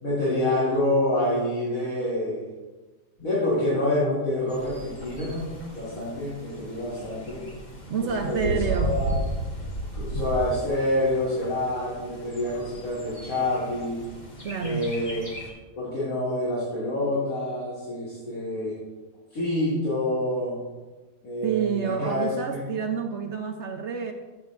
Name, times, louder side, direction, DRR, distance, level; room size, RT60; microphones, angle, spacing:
voice 1, 0.0-2.4 3.2-7.5 8.0-9.1 9.9-14.0 14.6-15.2 15.8-18.8 19.3-20.6 21.2-22.8, left 1 dB, 60° left, -10 dB, 2.8 m, -27 dB
Bird, 4.5-15.5, right 1 dB, 30° left, 1.5 m, -35 dB
voice 2, 7.9-9.0 14.4-14.9 21.4-24.1, right 6 dB, 65° right, 4 dB, 0.7 m, -29 dB
13.5 x 7.0 x 2.5 m, 1.2 s
omnidirectional pair, 1.8 m